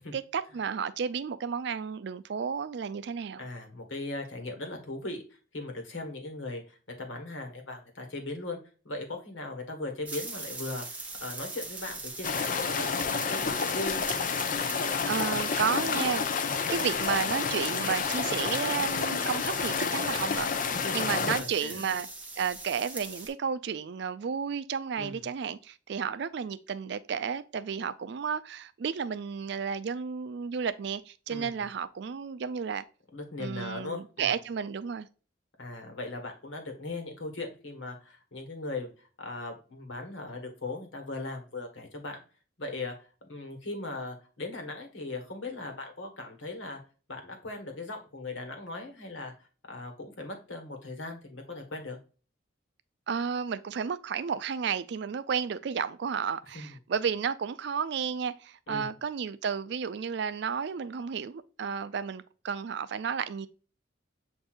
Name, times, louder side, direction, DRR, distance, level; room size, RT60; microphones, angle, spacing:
voice 1, 0.1-3.4 15.1-20.5 20.9-22.1 22.4-32.8 33.4-35.1 53.1-63.5, right 6 dB, 60° right, 0.3 m, -32 dB
voice 2, 3.4-5.2 5.5-8.6 8.8-14.2 20.7-21.9 24.9-25.1 31.3-31.7 33.1-34.3 35.6-42.2 42.6-42.9 43.2-46.8 47.1-49.3 49.7-52.0 56.5-56.7 58.7-58.9, left 2 dB, 75° left, 1.3 m, -38 dB
sound 1, 10.1-23.3, right 3 dB, 5° right, 0.8 m, -41 dB
sound 2, 12.2-21.4, left 6 dB, 40° left, 0.4 m, -30 dB
7.6 x 2.7 x 2.4 m
head